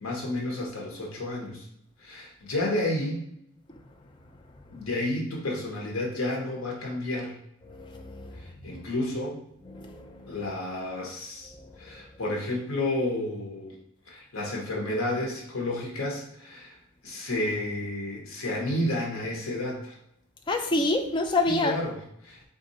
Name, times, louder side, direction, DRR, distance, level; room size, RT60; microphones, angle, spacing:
voice 1, 0.0-1.7 2.0-3.2 4.7-7.4 8.4-9.4 10.3-11.5 11.8-13.8 14.1-16.8 17.0-20.0 21.5-22.5, left 1 dB, 90° left, -1 dB, 1.1 m, -31 dB
voice 2, 7.7-8.3 9.7-10.3 20.5-21.8, left 2 dB, 25° left, 4 dB, 0.4 m, -27 dB
3.9 x 2.6 x 4.0 m, 0.76 s
head